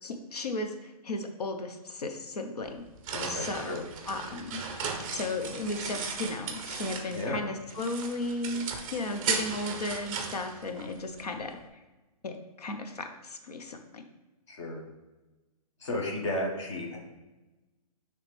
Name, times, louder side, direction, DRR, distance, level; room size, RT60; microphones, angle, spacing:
voice 1, 0.0-2.9 3.3-4.6 4.9-11.8 12.2-14.0, left 2 dB, 90° left, 6 dB, 0.9 m, -35 dB
sound 1, 2.6-7.4 7.7-11.2, right 5 dB, 15° right, 0.5 m, -36 dB
voice 2, 3.1-3.9 7.1-7.4 14.5-14.8 15.8-17.0, left 1 dB, 50° left, -1 dB, 1.5 m, -33 dB
8.9 x 3.2 x 3.5 m, 1.1 s
hypercardioid pair, 160°, 20 cm